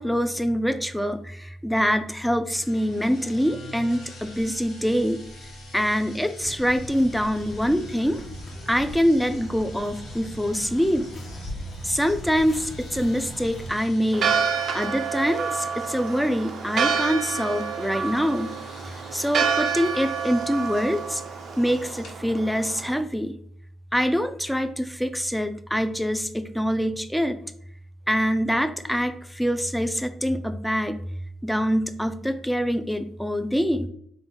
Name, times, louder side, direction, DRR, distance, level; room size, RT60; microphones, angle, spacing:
voice 1, 0.0-8.2 8.7-11.1 11.8-14.3 14.7-18.5 18.8-21.2 21.6-23.4 23.9-27.4 28.1-31.0 31.4-33.9, equal, 5° left, 9 dB, 0.4 m, -25 dB
sound 1, 2.5-22.1, left 1 dB, 85° left, 1.4 m, -47 dB
sound 2, 6.4-13.8, equal, 45° left, 0.9 m, -39 dB
Church bell, 14.1-23.0, right 6 dB, 60° right, 0.4 m, -28 dB
3.8 x 2.5 x 3.6 m, 0.66 s
cardioid pair, 90°, 0 cm